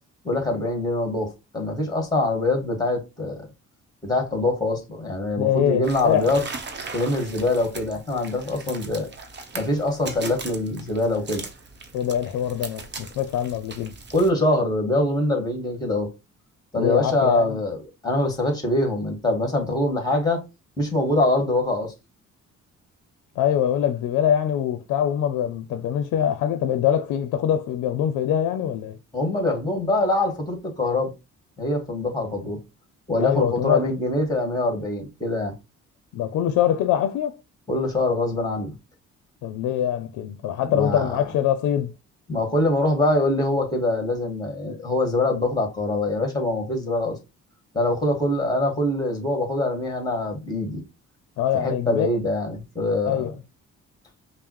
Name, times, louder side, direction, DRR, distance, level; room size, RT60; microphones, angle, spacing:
voice 1, 0.2-3.5 4.0-6.4 6.9-9.1 9.5-11.4 14.1-16.1 16.7-17.8 18.0-20.4 20.8-21.9 29.1-31.1 31.6-32.6 33.1-35.5 37.7-38.7 40.6-41.2 42.3-47.2 47.7-50.8 51.5-53.3, left 2 dB, 15° left, 1.9 m, -24 dB
voice 2, 5.4-6.3 11.9-13.9 16.8-17.6 23.4-29.0 33.2-33.9 36.1-37.4 39.4-41.9 51.4-52.1 53.1-53.3, left 10 dB, 85° left, 0.5 m, -23 dB
sound 1, 5.8-14.3, right 4 dB, 35° right, 0.8 m, -39 dB
5.3 x 2.1 x 3.1 m
cardioid pair, 90°, 30 cm